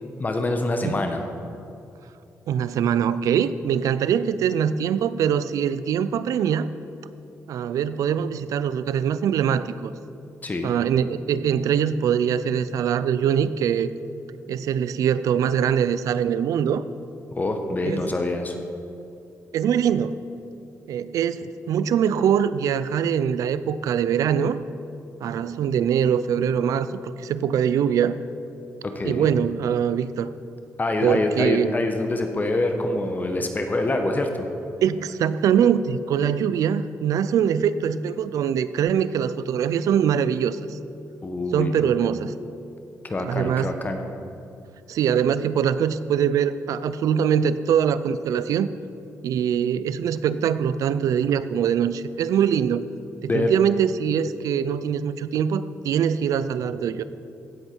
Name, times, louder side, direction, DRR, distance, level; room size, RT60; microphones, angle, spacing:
voice 1, 0.2-1.2 10.4-10.7 17.4-18.6 28.8-29.3 30.8-34.5 41.2-41.9 43.0-44.0 53.3-53.5, left 2 dB, 30° left, 5 dB, 1.1 m, -25 dB
voice 2, 2.5-6.7 7.5-9.9 10.6-13.9 14.5-16.8 17.8-18.0 19.5-20.2 20.9-24.6 25.2-28.1 29.0-30.3 31.0-31.7 34.8-40.8 41.5-42.3 43.2-43.7 44.9-48.7 49.2-52.8 53.2-57.0, right 8 dB, 85° right, 15 dB, 0.4 m, -23 dB
16.5 x 7.8 x 4.6 m, 2.7 s
cardioid pair, 80°, 6 cm